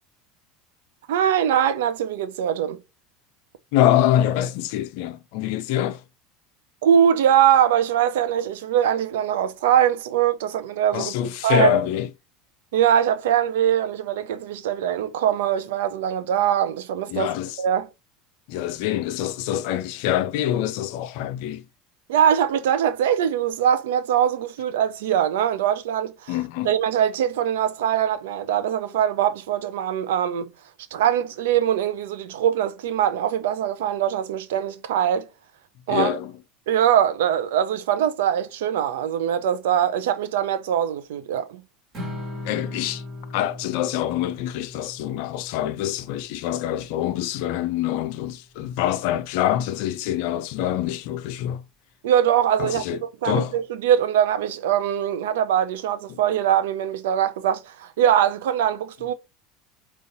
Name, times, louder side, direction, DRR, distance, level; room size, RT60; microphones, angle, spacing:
voice 1, 1.1-2.8 6.8-11.1 11.4-11.8 12.7-17.3 17.6-17.9 22.1-26.3 26.6-30.5 30.9-35.3 35.9-36.2 36.7-41.6 52.0-59.1, right 9 dB, 70° right, 0.5 m, -22 dB
voice 2, 3.7-6.0 10.9-12.1 17.1-17.6 18.5-21.6 26.3-26.7 35.9-36.3 42.4-43.0 43.3-51.6 52.6-53.6 56.1-56.2, left 12 dB, 65° left, 0.4 m, -25 dB
Strum, 41.9-48.2, left 2 dB, 45° right, 1.5 m, -39 dB
3.8 x 2.5 x 2.6 m
hypercardioid pair, 80°, 0 cm